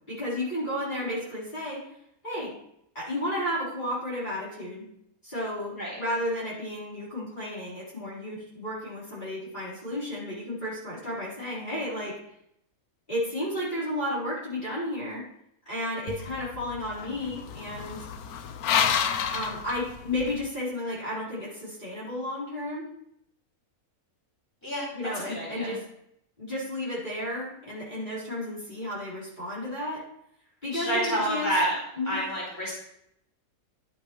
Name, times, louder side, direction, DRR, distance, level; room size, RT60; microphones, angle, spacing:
voice 1, 0.1-1.9 2.2-2.5 2.9-4.8 5.2-12.2 13.1-15.2 15.7-18.1 19.3-22.8 24.9-25.8 26.4-30.0 30.6-31.5 32.0-32.1, left 1 dB, 30° left, -10 dB, 4.5 m, -32 dB
sound 1, 16.1-20.4, left 8 dB, 85° left, 1.2 m, -30 dB
voice 2, 25.1-25.8 30.7-31.8 32.0-32.7, right 1 dB, 15° left, -7 dB, 4.4 m, -28 dB
12.0 x 8.2 x 3.1 m, 0.74 s
omnidirectional pair, 1.5 m